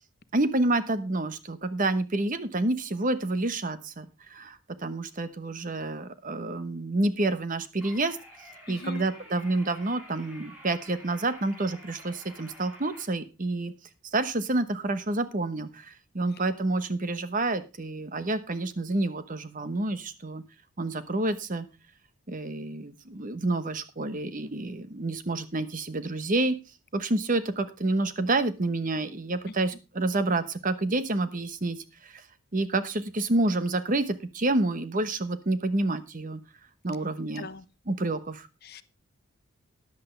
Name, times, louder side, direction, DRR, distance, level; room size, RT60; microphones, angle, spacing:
voice 1, 0.3-8.2 8.7-13.7 14.1-20.4 20.8-21.7 22.3-26.6 26.9-32.3 32.5-36.4 36.8-37.5 37.9-38.5, right 2 dB, 40° right, 12 dB, 1.0 m, -28 dB
sound 1, 7.8-13.0, left 1 dB, 5° right, 4.7 m, -49 dB
voice 2, 8.7-9.0 16.3-16.4 29.5-29.6 37.4-37.6 38.6-38.8, left 4 dB, 45° left, 14 dB, 0.7 m, -41 dB
14.0 x 10.5 x 3.2 m, 0.28 s
head